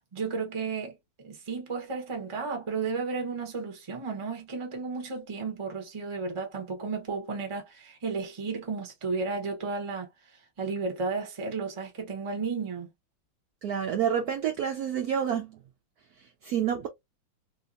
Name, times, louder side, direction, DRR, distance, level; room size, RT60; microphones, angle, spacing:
voice 1, 0.1-10.1 10.6-12.9, right 4 dB, 30° right, 0.5 m, -33 dB
voice 2, 13.6-15.6 16.2-16.9, right 8 dB, 85° right, 0.8 m, -29 dB
3.4 x 2.7 x 2.5 m
omnidirectional pair, 2.3 m